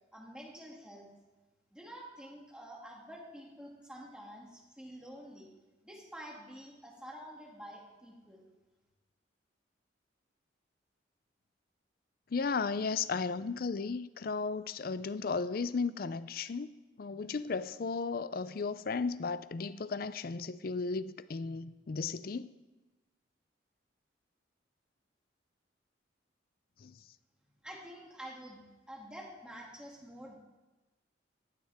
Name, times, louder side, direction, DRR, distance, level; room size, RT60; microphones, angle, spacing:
voice 1, 0.1-1.1 1.7-5.5 5.8-8.4 27.6-28.6 28.9-30.4, equal, 5° right, 2.3 m, -48 dB
voice 2, 12.3-16.7 17.0-22.5 26.8-26.9, left 4 dB, 50° left, 0.4 m, -35 dB
15.0 x 12.5 x 3.5 m
head